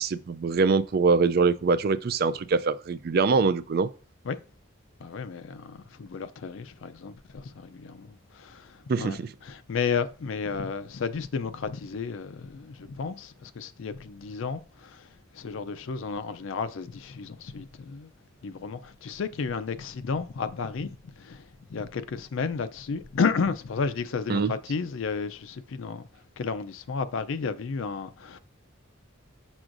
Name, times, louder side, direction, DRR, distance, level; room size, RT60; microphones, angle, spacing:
voice 1, 0.0-3.9 8.9-9.3 24.3-24.5, right 4 dB, 50° right, 0.3 m, -24 dB
voice 2, 5.0-15.1 15.3-18.1 18.4-26.1 26.4-28.4, left 5 dB, 70° left, 0.4 m, -32 dB
6.1 x 6.1 x 2.5 m
head